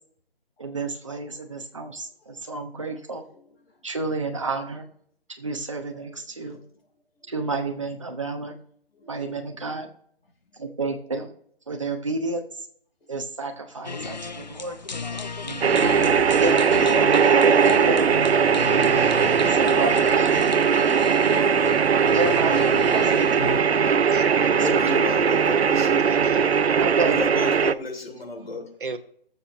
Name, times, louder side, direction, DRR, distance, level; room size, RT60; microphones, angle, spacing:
voice 1, 0.6-3.2 3.8-4.9 5.4-6.6 7.3-8.5 9.1-9.9 10.6-11.3 11.7-12.4 13.1-14.8 15.4-15.7 16.4-17.2 17.8-19.1 19.5-20.4 22.1-24.1 24.6-25.0 26.8-27.2, right 3 dB, 30° right, 1.0 m, -31 dB
voice 2, 6.0-6.4 9.0-9.3 24.6-26.0 27.0-28.7, left 2 dB, 70° left, 3.1 m, -33 dB
sound 1, 13.8-23.6, left 4 dB, 45° left, 0.5 m, -34 dB
sound 2, 15.6-27.7, right 6 dB, 85° right, 0.6 m, -19 dB
voice 3, 23.8-24.9 26.0-26.5 28.8-29.0, right 4 dB, 55° right, 1.2 m, -36 dB
18.5 x 7.2 x 3.0 m
hypercardioid pair, 175°, 31 cm